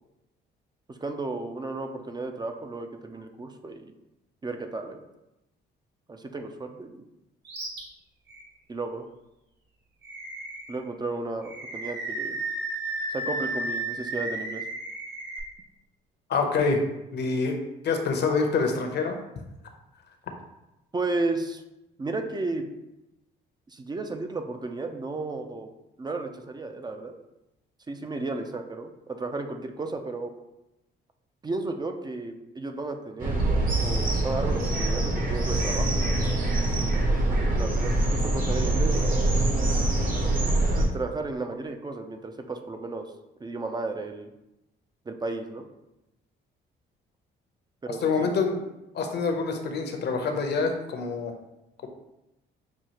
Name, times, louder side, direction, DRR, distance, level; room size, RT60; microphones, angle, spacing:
voice 1, 0.9-3.9 4.4-5.0 6.1-7.1 8.7-9.1 10.7-12.4 13.1-14.6 20.9-21.6 22.0-22.7 23.7-25.7 26.0-27.1 27.9-30.3 31.4-33.4 33.8-36.1 37.3-39.4 40.7-43.1 43.4-44.3 45.1-45.6 47.8-48.4, right 3 dB, 20° right, 6 dB, 0.4 m, -33 dB
Animal, 7.4-7.8 8.3-8.4 10.0-10.8 11.4-15.4, right 2 dB, 60° right, 1.4 m, -33 dB
voice 2, 16.3-16.8 17.1-17.5 17.8-19.2 47.9-48.6 48.9-51.3, left 4 dB, 60° left, 4 dB, 0.7 m, -26 dB
sound 1, 33.2-40.8, right 2 dB, 45° right, 1.1 m, -24 dB
6.1 x 2.3 x 2.9 m, 0.93 s
cardioid pair, 90°, 20 cm